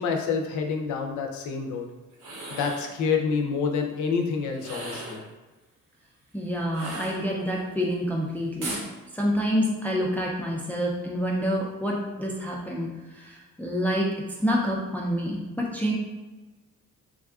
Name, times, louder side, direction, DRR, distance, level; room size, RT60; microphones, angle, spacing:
voice 1, 0.0-1.9 2.5-5.2, left 5 dB, 75° left, 2 dB, 0.5 m, -27 dB
sound 1, 2.1-2.9 4.5-5.3 6.7-7.6 8.6-8.9, right 2 dB, 85° right, 0.9 m, -37 dB
voice 2, 6.3-8.8 9.1-12.9 13.2-14.1 14.4-15.9, equal, 5° left, -3 dB, 0.4 m, -27 dB
3.5 x 2.4 x 2.3 m, 1.2 s
cardioid pair, 90°, 30 cm